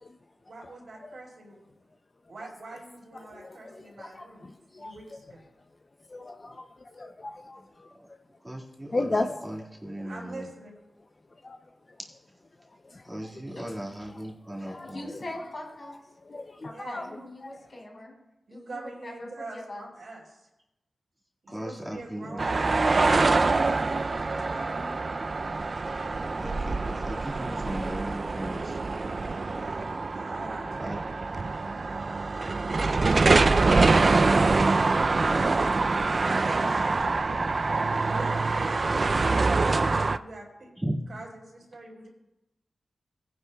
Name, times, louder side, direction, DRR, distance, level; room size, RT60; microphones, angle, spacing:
voice 1, 0.4-1.7 2.3-4.4 4.8-5.4 10.0-10.7 16.7-17.3 18.5-20.5 21.4-24.9 29.2-31.1 35.4-37.4 38.0-40.7 41.1-42.1, right 2 dB, 70° right, -2 dB, 4.2 m, -44 dB
voice 2, 3.3-4.9 6.1-7.9 8.9-9.5 11.4-11.6 12.8-13.0 14.7-15.0 16.2-17.1 17.4-17.6, left 2 dB, 35° left, 6 dB, 0.5 m, -35 dB
voice 3, 7.6-8.1 8.4-10.5 13.0-15.1 21.5-22.4 26.4-28.8 30.8-31.0 40.8-41.0, right 1 dB, 10° right, -3 dB, 1.8 m, -37 dB
voice 4, 14.6-16.0 16.6-18.1 18.5-19.8, left 1 dB, 55° left, -2 dB, 4.5 m, -41 dB
sound 1, 22.4-40.2, right 3 dB, 45° right, 0.3 m, -25 dB
19.0 x 10.0 x 2.3 m, 0.93 s
wide cardioid pair, 105°, 0 cm